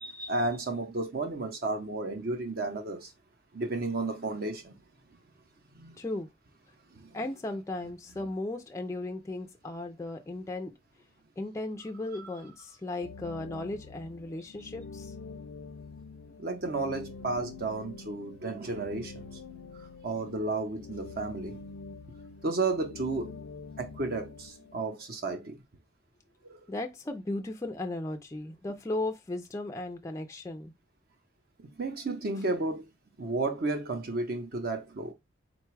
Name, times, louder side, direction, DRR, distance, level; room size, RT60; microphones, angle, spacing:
voice 1, 0.0-3.1 3.5-4.8 5.8-6.0 7.0-7.2 16.4-19.3 20.0-21.6 22.4-23.4 23.8-25.6 26.4-26.6 31.8-32.9 33.2-35.1, right 3 dB, 50° right, 0.7 m, -32 dB
voice 2, 6.0-6.3 7.1-10.7 11.4-15.1 26.7-30.7, left 2 dB, 15° left, 0.3 m, -36 dB
sound 1, 13.0-24.8, left 4 dB, 85° left, 0.4 m, -46 dB
4.0 x 2.2 x 4.5 m
head